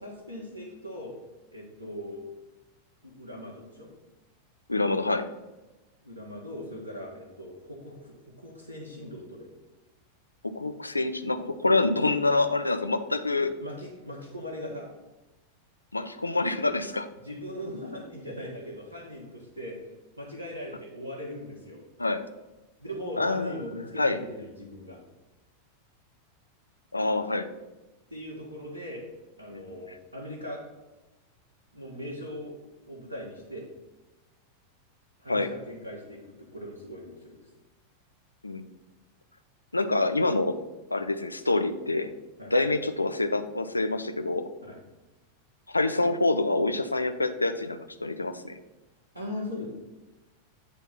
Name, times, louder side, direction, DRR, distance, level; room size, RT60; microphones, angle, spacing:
voice 1, 0.0-1.1 1.5-2.2 3.0-3.9 6.0-9.5 13.6-14.9 17.2-21.8 22.8-25.0 28.1-29.1 29.4-30.6 31.7-32.6 32.9-33.7 35.2-37.4 42.4-42.5 44.6-44.8 49.1-49.7, left 1 dB, 85° right, -4 dB, 1.3 m, -39 dB
voice 2, 4.7-5.3 10.4-13.5 15.9-17.1 22.0-22.2 23.2-23.6 24.0-24.2 26.9-27.5 29.5-29.6 35.3-35.5 38.4-38.7 39.7-40.6 40.9-42.1 42.5-44.5 45.7-48.6, left 2 dB, 80° left, 9 dB, 0.5 m, -26 dB
8.5 x 3.6 x 5.7 m, 1.1 s
figure-of-eight pair, 90°, 0 cm